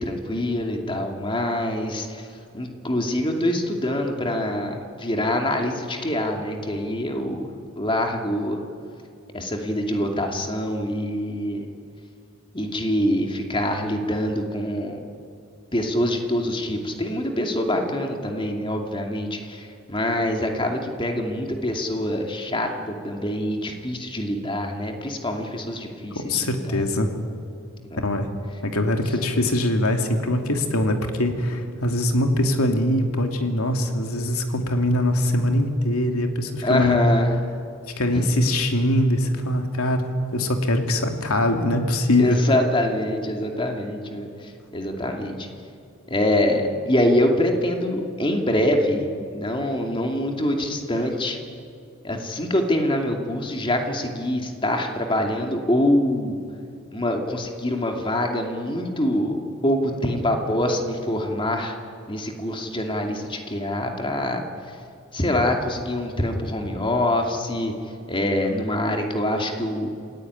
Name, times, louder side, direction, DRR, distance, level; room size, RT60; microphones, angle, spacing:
voice 1, 0.0-2.3 2.5-7.5 7.8-8.6 9.3-11.7 12.5-15.0 15.7-26.8 27.9-28.0 36.6-37.3 38.1-38.2 42.2-45.5 46.1-51.4 52.0-56.4 56.9-61.8 62.1-64.4 65.1-67.7 68.1-69.9, left 1 dB, 25° left, 3 dB, 2.5 m, -25 dB
voice 2, 26.1-27.1 28.0-28.3 28.6-37.0 38.0-42.4, left 1 dB, 90° left, 4 dB, 2.7 m, -22 dB
27.5 x 16.5 x 9.6 m, 2.5 s
head